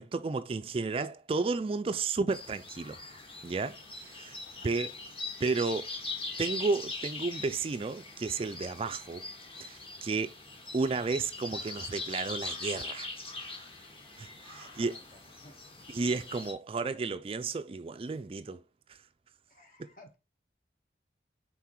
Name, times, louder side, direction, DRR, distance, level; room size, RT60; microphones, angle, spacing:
voice 1, 0.0-3.0 3.4-3.8 4.0-4.4 4.6-4.9 5.4-5.9 6.4-9.2 9.6-10.3 10.7-13.1 14.2-15.0 15.9-18.6 18.9-19.0 19.8-19.9, right 4 dB, 30° right, 0.3 m, -32 dB
sound 1, 2.3-16.5, left 3 dB, 30° left, 1.6 m, -42 dB
voice 2, 14.5-15.6 19.5-20.2, left 2 dB, 50° left, 2.1 m, -57 dB
5.9 x 4.0 x 4.5 m
head